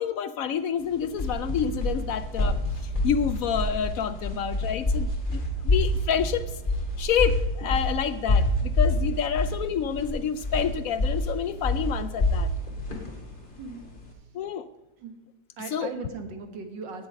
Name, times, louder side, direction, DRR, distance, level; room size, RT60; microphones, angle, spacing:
voice 1, 0.0-2.6 3.0-6.5 7.0-12.5 14.3-14.7 15.7-15.9, left 8 dB, 75° left, 13 dB, 0.8 m, -28 dB
sound 1, 0.8-14.1, left 1 dB, 25° left, 2.2 m, -27 dB
voice 2, 15.6-17.1, right 4 dB, 80° right, 7 dB, 2.2 m, -38 dB
17.5 x 7.2 x 5.2 m, 1.1 s
omnidirectional pair, 2.0 m